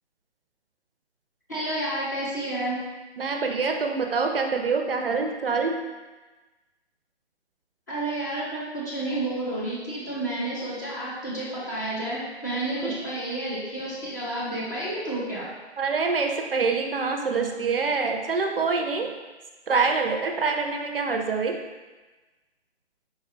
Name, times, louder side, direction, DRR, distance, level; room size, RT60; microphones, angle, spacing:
voice 1, 1.5-2.8 7.9-15.5, right 1 dB, 15° left, -9 dB, 0.5 m, -30 dB
voice 2, 3.2-5.8 12.8-13.0 15.8-19.1 19.7-21.6, right 4 dB, 55° right, 3 dB, 0.4 m, -25 dB
4.4 x 2.2 x 3.3 m, 1.2 s
figure-of-eight pair, 140°, 33 cm